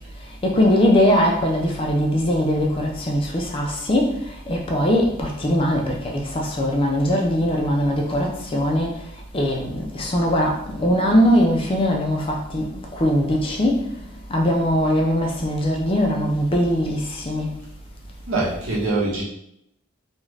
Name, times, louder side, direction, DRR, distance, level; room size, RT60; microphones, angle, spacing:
voice 1, 0.4-4.1 4.5-8.9 9.3-12.6 13.0-13.8 14.3-17.0 17.3-17.5, equal, 25° left, 0 dB, 0.4 m, -20 dB
voice 2, 18.3-19.2, right 2 dB, 80° right, -6 dB, 1.0 m, -23 dB
2.5 x 2.3 x 3.2 m, 0.75 s
head